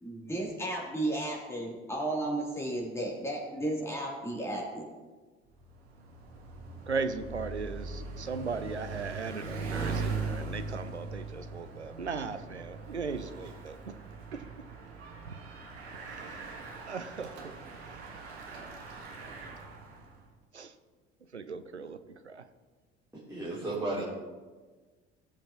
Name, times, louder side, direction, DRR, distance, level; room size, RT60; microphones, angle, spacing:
voice 1, 0.0-4.9, right 1 dB, 10° left, -3 dB, 3.2 m, -34 dB
Bicycle, 5.6-20.2, right 3 dB, 70° right, 1.7 m, -40 dB
voice 2, 6.9-13.9 14.3-14.4 15.3-15.4 16.1-17.5 20.5-20.7 21.3-22.4, right 4 dB, 90° right, 10 dB, 0.6 m, -38 dB
voice 3, 23.1-24.0, right 2 dB, 10° right, -9 dB, 3.4 m, -34 dB
17.0 x 7.6 x 3.0 m, 1.4 s
figure-of-eight pair, 60°, 33 cm